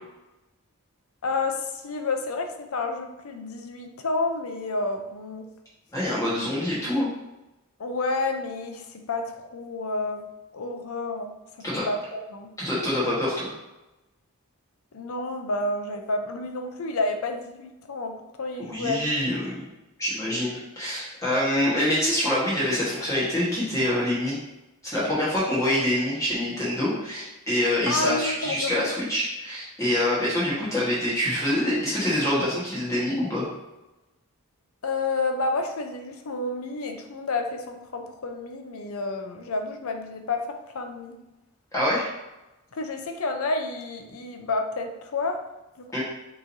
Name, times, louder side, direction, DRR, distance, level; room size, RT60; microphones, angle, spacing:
voice 1, 1.2-5.4 7.8-10.2 10.5-11.3 11.9-12.5 14.9-18.1 18.4-19.0 27.9-28.9 34.8-40.4 40.7-41.2 42.7-45.4, left 3 dB, 75° left, 5 dB, 0.6 m, -30 dB
voice 2, 5.9-7.1 11.6-11.8 12.6-13.5 18.6-19.6 20.0-24.4 24.8-33.5 41.7-42.1 45.9-46.0, left 1 dB, 15° left, -8 dB, 1.2 m, -25 dB
6.1 x 3.1 x 2.7 m, 0.98 s
head